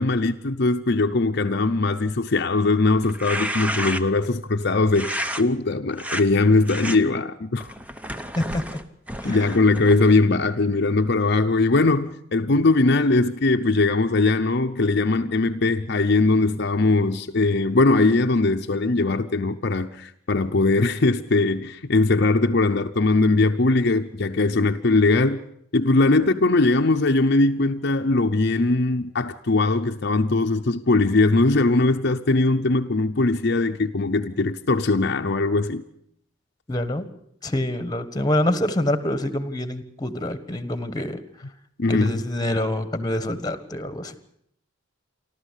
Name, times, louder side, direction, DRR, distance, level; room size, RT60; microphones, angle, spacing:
voice 1, 0.0-7.7 9.2-25.4 25.7-35.8 41.8-42.1, left 3 dB, 55° left, 0.8 m, -20 dB
sound 1, 3.0-4.3 4.9-5.4 5.9-6.2 6.7-7.0 7.6-10.2, equal, 5° right, 0.9 m, -31 dB
voice 2, 8.3-8.8 9.2-9.6 36.7-37.0 37.4-41.2 41.9-44.2, left 1 dB, 20° left, 1.4 m, -26 dB
28.5 x 12.5 x 8.3 m
head